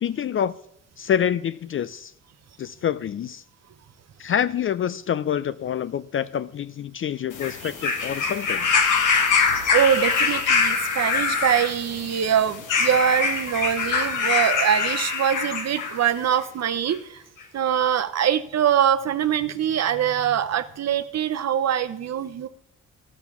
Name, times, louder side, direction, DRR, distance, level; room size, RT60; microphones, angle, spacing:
voice 1, 0.0-0.5 1.0-2.1 2.6-3.4 4.2-8.7, left 9 dB, 45° left, 16 dB, 0.4 m, -26 dB
sound 1, 7.3-16.0 16.9-17.0, left 5 dB, 85° left, 1.8 m, -24 dB
voice 2, 9.7-17.2 17.5-22.5, right 9 dB, 60° right, 11 dB, 0.8 m, -23 dB
12.0 x 6.2 x 7.0 m, 0.76 s
cardioid pair, 90°, 30 cm